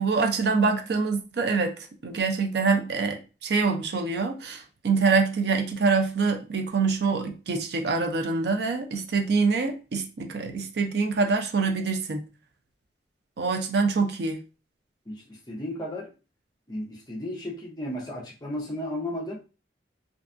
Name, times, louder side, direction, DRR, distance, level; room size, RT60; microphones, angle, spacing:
voice 1, 0.0-1.7 2.0-12.3 13.4-14.4, right 4 dB, 65° right, 0.4 m, -25 dB
voice 2, 15.1-16.1 16.7-19.4, left 1 dB, 25° left, 0.5 m, -34 dB
2.6 x 2.3 x 2.5 m
head